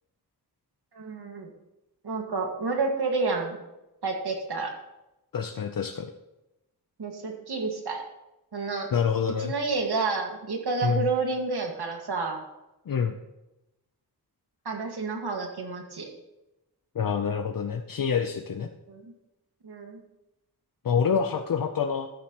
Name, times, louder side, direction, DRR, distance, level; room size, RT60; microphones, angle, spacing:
voice 1, 0.9-1.5 2.0-3.6 4.0-4.7 7.0-8.0 8.5-8.9 9.4-12.4 14.7-16.1 18.9-19.1 19.6-20.0, right 4 dB, 75° right, 2 dB, 1.9 m, -30 dB
voice 2, 5.3-6.1 8.9-9.5 10.8-11.0 12.9-13.2 16.9-18.7 20.8-22.1, left 6 dB, 55° left, 6 dB, 0.7 m, -27 dB
13.0 x 10.5 x 3.0 m, 0.96 s
wide cardioid pair, 105°, 40 cm